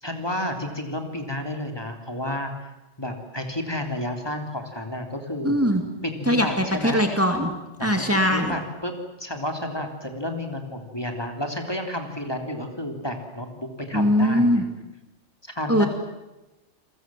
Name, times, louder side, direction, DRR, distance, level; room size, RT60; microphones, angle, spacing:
voice 1, 0.0-2.5 3.0-5.6 6.0-7.0 7.8-7.9 8.3-8.9 9.2-14.6 15.4-15.9, left 1 dB, 20° left, 4 dB, 3.3 m, -31 dB
voice 2, 5.4-5.8 6.3-7.5 7.8-8.6 13.9-14.6 15.7-15.9, equal, 10° right, 4 dB, 2.5 m, -21 dB
29.5 x 22.0 x 7.7 m, 1.0 s
omnidirectional pair, 1.2 m